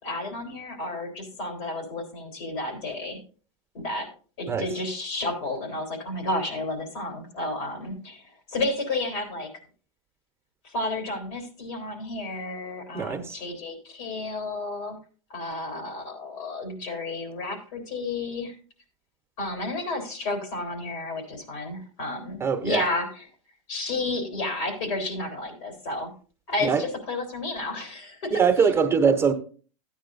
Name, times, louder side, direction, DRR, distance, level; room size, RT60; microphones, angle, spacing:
voice 1, 0.0-3.2 3.7-4.1 4.4-9.5 10.6-15.0 15.3-18.6 19.4-23.3 23.7-26.1 26.5-28.4, left 2 dB, 75° left, 3 dB, 3.6 m, -31 dB
voice 2, 12.9-13.4 22.4-22.8 26.6-26.8 28.3-29.3, right 6 dB, 15° right, 6 dB, 1.0 m, -22 dB
13.5 x 9.3 x 2.6 m, 0.39 s
hypercardioid pair, 115°, 16 cm